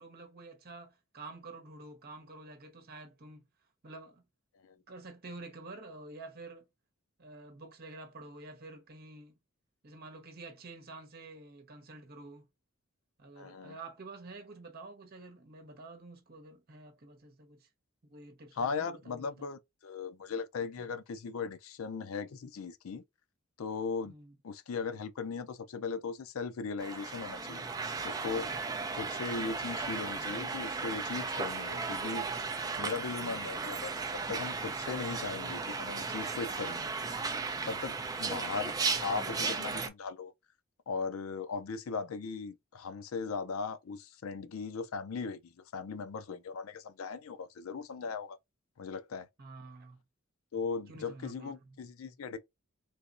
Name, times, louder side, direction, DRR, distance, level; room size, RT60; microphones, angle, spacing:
voice 1, 0.0-3.5 3.8-4.2 4.9-6.7 7.2-9.3 9.8-12.5 13.2-17.7 18.0-19.4 24.0-24.3 33.2-33.7 38.3-38.6 49.4-50.0 50.9-51.8, right 3 dB, 45° right, 1.1 m, -49 dB
voice 2, 13.4-13.8 18.6-23.0 23.6-24.1 24.4-27.7 28.0-28.5 28.9-32.3 32.8-37.0 37.7-38.7 39.0-40.3 40.9-48.4 48.8-49.3 50.5-52.4, left 5 dB, 75° left, 0.5 m, -38 dB
sound 1, 26.8-39.9, right 4 dB, 15° right, 0.4 m, -35 dB
3.3 x 2.9 x 2.5 m
head